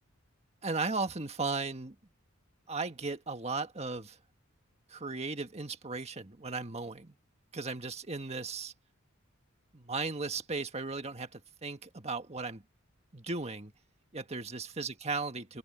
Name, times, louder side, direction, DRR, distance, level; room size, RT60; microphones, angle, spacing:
voice 1, 0.6-1.9 2.7-4.2 4.9-7.1 7.5-8.7 9.7-12.6 13.1-13.7 14.1-15.6, right 3 dB, 30° right, 1.7 m, -36 dB
open air
head